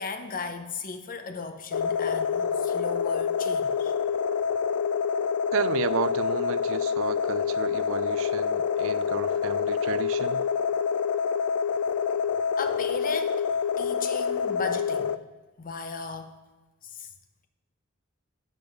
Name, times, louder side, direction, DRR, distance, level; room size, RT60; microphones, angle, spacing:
voice 1, 0.0-3.9 12.6-13.5 13.8-15.2 15.6-16.3 16.8-17.1, left 4 dB, 40° left, 8 dB, 0.7 m, -36 dB
sound 1, 1.7-15.2, left 6 dB, 80° left, 0.4 m, -27 dB
voice 2, 5.5-10.4, right 7 dB, 65° right, 15 dB, 0.4 m, -32 dB
7.7 x 5.2 x 6.4 m, 1.2 s
head